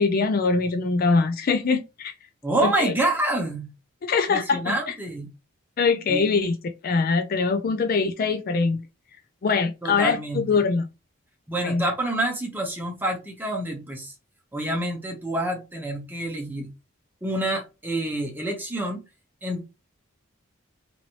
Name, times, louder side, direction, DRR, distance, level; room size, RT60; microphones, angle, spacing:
voice 1, 0.0-2.1 2.6-2.9 4.0-4.9 5.8-6.5 6.8-8.8 9.4-10.9 11.6-11.9, left 4 dB, 45° left, 0.3 m, -23 dB
voice 2, 2.4-3.7 4.3-5.3 6.1-6.2 9.8-10.6 11.5-14.1 14.5-16.7 17.2-19.0 19.4-19.6, right 1 dB, 10° right, 0.9 m, -27 dB
3.0 x 2.7 x 2.9 m
head